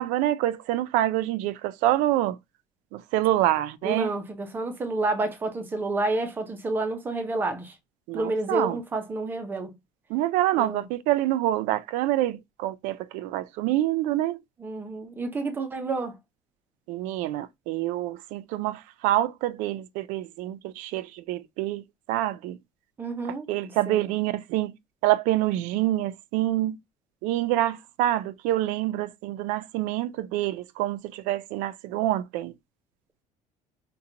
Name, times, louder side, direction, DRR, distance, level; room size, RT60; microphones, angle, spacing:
voice 1, 0.0-2.4 2.9-4.1 8.1-8.8 10.1-14.4 16.9-21.8 22.1-22.6 23.5-24.7 25.0-26.8 27.2-32.5, right 14 dB, 75° right, 0.4 m, -26 dB
voice 2, 3.8-7.8 8.1-9.7 10.5-10.9 14.6-16.2 23.0-24.1, right 2 dB, 15° right, 0.5 m, -29 dB
2.8 x 2.2 x 3.7 m
cardioid pair, 180°, 13 cm